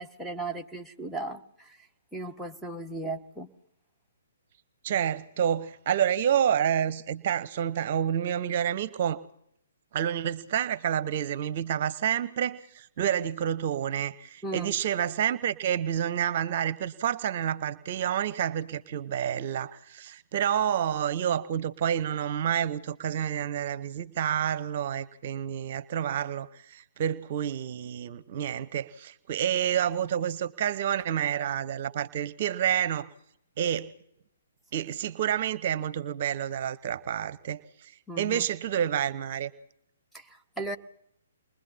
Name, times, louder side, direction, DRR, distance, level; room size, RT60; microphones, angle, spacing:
voice 1, 0.0-1.9 2.1-3.5 14.4-14.7 38.1-38.5 40.1-40.8, right 2 dB, ahead, 1.3 m, -36 dB
voice 2, 4.8-9.2 9.9-33.1 33.6-33.9 34.7-39.5, right 9 dB, 45° right, 0.9 m, -29 dB
29.0 x 22.0 x 4.2 m
figure-of-eight pair, 130°, 0 cm